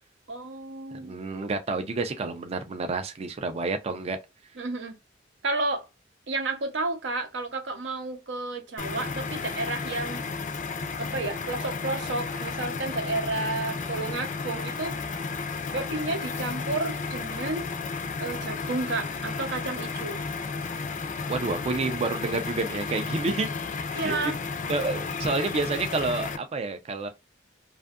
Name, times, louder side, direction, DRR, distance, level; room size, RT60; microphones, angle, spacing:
voice 1, 0.3-1.2 4.6-5.0 5.4-5.9 6.3-10.2 11.0-14.9 15.7-17.7 18.2-20.2 23.9-24.4, right 2 dB, 70° right, 0.7 m, -31 dB
voice 2, 1.0-4.2 21.3-23.5 23.9-24.2 24.7-27.1, right 3 dB, 35° right, 0.4 m, -29 dB
sound 1, 8.8-26.4, left 4 dB, 40° left, 0.4 m, -33 dB
2.6 x 2.3 x 2.4 m
head